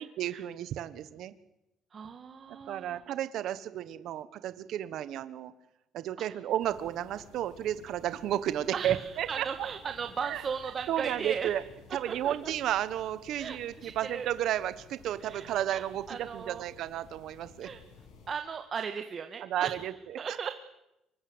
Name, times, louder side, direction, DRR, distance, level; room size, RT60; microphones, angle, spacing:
voice 1, 0.0-1.3 2.7-5.5 5.9-9.7 10.2-10.4 10.9-11.6 11.9-17.7 19.4-20.5, right 11 dB, 65° right, 13 dB, 1.3 m, -33 dB
voice 2, 1.9-3.0 8.7-11.5 12.1-12.5 13.4-14.3 15.2-15.8 16.1-16.6 17.6-17.8 18.3-19.8 20.2-20.5, right 6 dB, 35° right, 6 dB, 1.8 m, -37 dB
sound 1, 6.6-18.3, left 4 dB, 90° left, 6.8 m, -55 dB
25.5 x 23.5 x 8.1 m, 0.90 s
cardioid pair, 120°, 0 cm